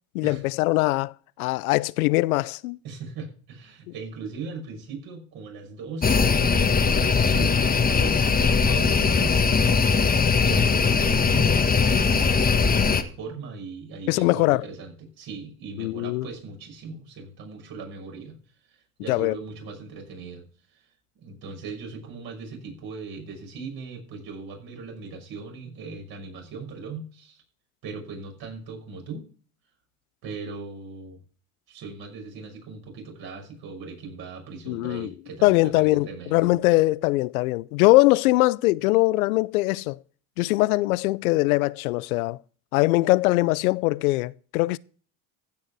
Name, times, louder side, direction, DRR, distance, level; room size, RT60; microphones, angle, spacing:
voice 1, 0.1-1.1 1.4-2.8 14.1-14.6 15.8-16.3 19.1-19.4 34.7-35.1 35.4-40.0 40.4-42.4 42.7-44.8, left 20 dB, 85° left, 0.6 m, -22 dB
voice 2, 2.8-9.7 10.0-18.4 18.7-20.5 20.7-20.8 21.2-27.4 27.8-29.2 30.2-31.2 31.7-36.5, right 4 dB, 60° right, 6.1 m, -39 dB
sound 1, 6.0-13.0, left 5 dB, 20° left, 1.5 m, -20 dB
15.5 x 6.5 x 4.7 m
supercardioid pair, 85°, 42 cm